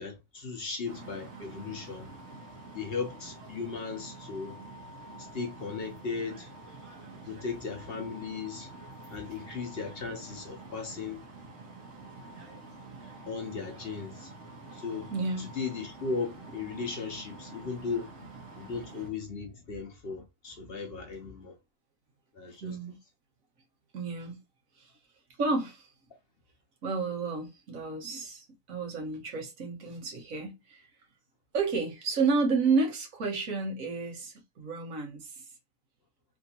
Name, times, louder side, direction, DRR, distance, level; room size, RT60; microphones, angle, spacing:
voice 1, 0.0-2.1 2.7-4.6 5.2-6.5 7.3-8.7 9.1-11.2 13.3-14.3 14.7-15.1 15.4-18.1 18.6-21.5 22.3-22.7, left 4 dB, 50° left, 0.9 m, -37 dB
sound 1, 0.9-19.1, right 2 dB, 60° right, 1.4 m, -47 dB
voice 2, 15.1-15.5 22.6-23.0 23.9-24.4 24.7-24.9 25.4-25.9 26.8-30.9 31.5-35.5, right 4 dB, 75° right, 1.5 m, -31 dB
3.5 x 2.6 x 2.8 m
omnidirectional pair, 1.4 m